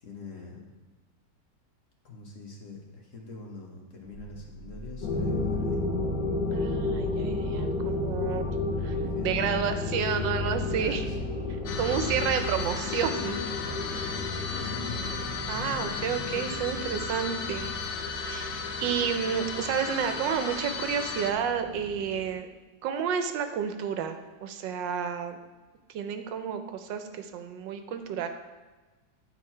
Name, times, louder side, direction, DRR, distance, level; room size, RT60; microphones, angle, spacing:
voice 1, 0.0-0.7 2.0-5.8 8.2-9.8 10.7-11.3 14.5-15.1, left 4 dB, 50° left, 0 dB, 1.3 m, -44 dB
sound 1, 4.1-17.8, equal, 15° right, 1.7 m, -43 dB
sound 2, 5.0-22.3, left 2 dB, 85° left, 1.7 m, -33 dB
voice 2, 6.5-8.6 8.8-9.0 9.2-11.0 11.8-13.4 13.8-14.4 15.5-17.8 18.2-22.5 22.8-25.4 25.9-28.3, right 7 dB, 85° right, 8 dB, 1.4 m, -31 dB
sound 3, 11.7-21.3, left 5 dB, 65° left, 1.0 m, -36 dB
9.3 x 4.5 x 4.4 m, 1.2 s
omnidirectional pair, 1.9 m